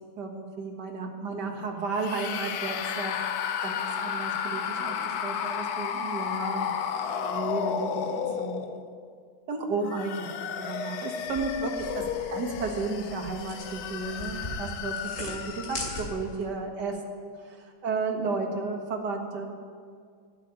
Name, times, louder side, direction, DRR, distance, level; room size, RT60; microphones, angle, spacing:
voice 1, 0.2-3.3 3.6-6.7 7.1-8.6 9.5-11.9 12.3-14.9 15.2-19.5, right 3 dB, 55° right, 2 dB, 2.0 m, -33 dB
sound 1, 1.9-9.0 9.7-16.2, left 7 dB, 70° left, 0.9 m, -33 dB
sound 2, 11.2-16.4, left 1 dB, 40° left, 3.1 m, -40 dB
11.5 x 8.8 x 9.7 m, 2.1 s
omnidirectional pair, 2.3 m